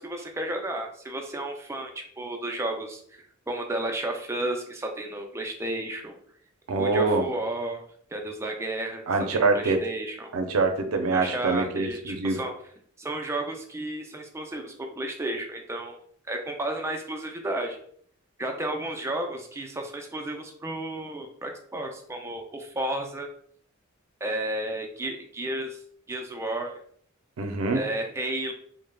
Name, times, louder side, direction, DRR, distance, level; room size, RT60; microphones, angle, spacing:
voice 1, 0.0-6.2 6.8-7.8 8.1-9.0 9.3-10.3 11.1-12.5 13.0-16.0 16.3-17.8 18.4-23.3 24.2-25.8 26.1-26.8 27.7-28.5, right 1 dB, 15° right, 3 dB, 0.3 m, -32 dB
voice 2, 6.7-7.3 9.1-9.8 10.3-12.4 27.4-27.8, right 3 dB, 90° right, 5 dB, 0.5 m, -24 dB
3.3 x 2.0 x 2.2 m, 0.62 s
head